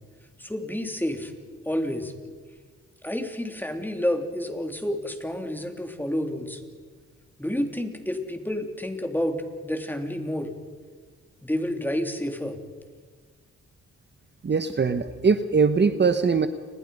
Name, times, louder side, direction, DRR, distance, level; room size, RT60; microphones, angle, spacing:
voice 1, 0.4-1.3 1.6-2.1 3.0-6.6 7.4-10.5 11.4-12.6, left 1 dB, 5° left, 5 dB, 3.3 m, -29 dB
voice 2, 14.4-16.5, right 5 dB, 35° right, 10 dB, 1.1 m, -21 dB
30.0 x 20.5 x 5.4 m, 1.5 s
cardioid pair, 80°, 30 cm